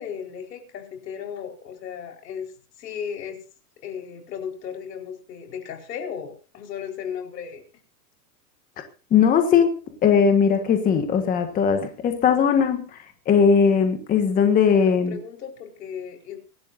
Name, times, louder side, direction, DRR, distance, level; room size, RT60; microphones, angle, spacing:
voice 1, 0.0-2.5 2.8-3.4 3.8-7.6 14.8-16.4, left 7 dB, 85° left, 2 dB, 4.6 m, -35 dB
voice 2, 9.1-15.2, left 6 dB, 20° left, 6 dB, 1.5 m, -19 dB
24.0 x 12.0 x 2.6 m, 0.36 s
supercardioid pair, 160°, 48 cm